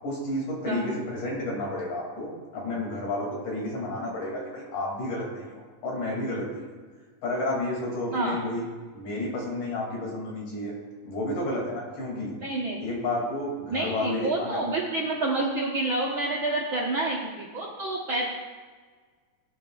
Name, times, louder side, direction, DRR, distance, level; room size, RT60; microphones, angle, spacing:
voice 1, 0.0-6.6 7.2-8.6 8.9-10.7 11.0-12.3 12.8-14.6, left 1 dB, 70° left, -2 dB, 4.2 m, -31 dB
voice 2, 12.4-12.8 13.7-18.2, right 2 dB, 60° right, -5 dB, 1.4 m, -28 dB
19.0 x 9.3 x 2.4 m, 1.5 s
omnidirectional pair, 3.8 m